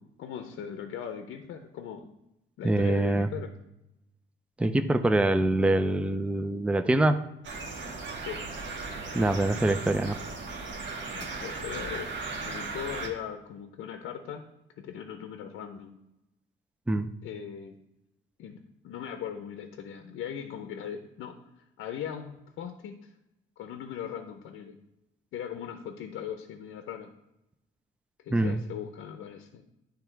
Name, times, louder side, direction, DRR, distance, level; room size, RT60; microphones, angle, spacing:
voice 1, 0.0-2.1 2.6-3.5 8.1-8.5 11.1-14.5 14.8-15.9 17.2-17.8 18.4-18.6 18.8-23.1 23.6-24.8 25.3-27.1 28.2-29.6, left 8 dB, 80° left, 6 dB, 0.6 m, -39 dB
voice 2, 2.6-3.3 4.6-7.2 9.1-10.2 16.9-17.1 28.3-28.6, right 1 dB, 5° right, 9 dB, 0.4 m, -24 dB
sound 1, 7.4-13.1, right 3 dB, 70° right, 1.5 m, -37 dB
10.0 x 3.5 x 4.5 m, 0.90 s
cardioid pair, 90°, 20 cm